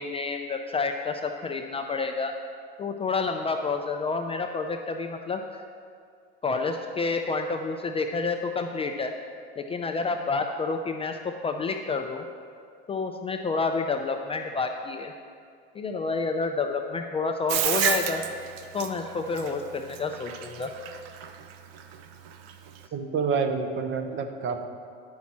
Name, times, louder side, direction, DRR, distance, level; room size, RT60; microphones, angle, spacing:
voice 1, 0.0-2.3 2.8-5.6 6.4-9.1 9.6-12.2 12.9-15.1 15.7-18.2 18.7-20.7, left 4 dB, 20° left, 4 dB, 0.4 m, -29 dB
Bathtub (filling or washing), 17.5-22.9, right 8 dB, 75° right, 0.7 m, -30 dB
voice 2, 22.9-24.6, right 5 dB, 40° right, 6 dB, 0.8 m, -28 dB
9.5 x 5.8 x 4.3 m, 2.3 s
supercardioid pair, 100°, 31 cm